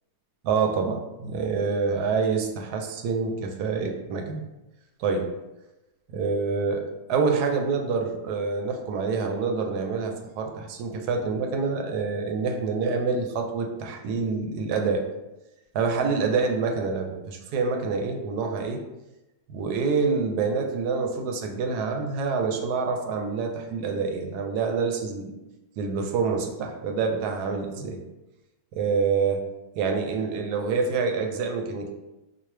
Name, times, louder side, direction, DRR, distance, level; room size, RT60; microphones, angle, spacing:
voice 1, 0.4-4.4 5.0-5.3 6.1-6.8 7.1-15.0 15.7-18.8 19.5-25.3 25.8-28.0 28.7-29.4 29.8-31.9, right 5 dB, 80° right, 3 dB, 1.1 m, -26 dB
3.8 x 2.4 x 3.2 m, 0.99 s
omnidirectional pair, 1.7 m